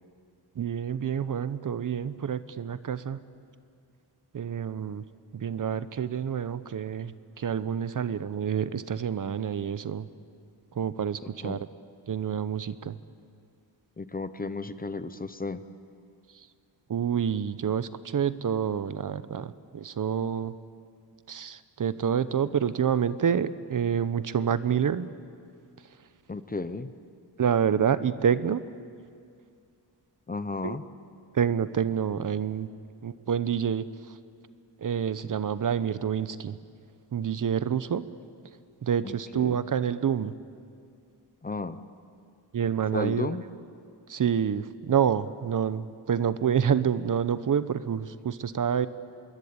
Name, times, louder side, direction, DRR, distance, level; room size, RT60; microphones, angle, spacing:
voice 1, 0.6-3.2 4.3-5.0 5.3-10.1 10.7-11.7 12.1-13.0 16.3-16.5 16.9-20.6 21.3-25.1 27.4-28.6 30.6-30.8 31.3-32.7 33.0-34.2 34.8-36.6 37.1-38.1 38.8-40.3 42.5-43.4 44.1-48.9, right 8 dB, 50° right, 14 dB, 0.8 m, -28 dB
voice 2, 14.0-15.6 26.3-26.9 30.3-30.8 39.0-39.6 41.4-41.8 42.9-43.4, left 3 dB, 20° left, 12 dB, 0.8 m, -34 dB
26.5 x 22.0 x 8.7 m, 2.3 s
wide cardioid pair, 155°, 42 cm